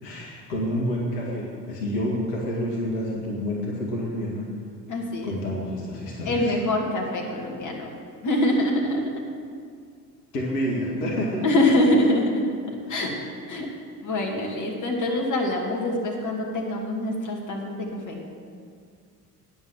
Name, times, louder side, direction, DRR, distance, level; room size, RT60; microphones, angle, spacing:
voice 1, 0.0-4.5 5.2-6.5 10.3-11.5 12.9-13.0, equal, 75° left, -2 dB, 2.0 m, -28 dB
voice 2, 4.9-5.4 6.2-7.9 8.2-9.1 11.4-13.2 13.5-13.7 14.0-18.2, left 1 dB, 40° left, -1 dB, 2.5 m, -24 dB
9.6 x 7.7 x 7.2 m, 2.2 s
figure-of-eight pair, 60°, 48 cm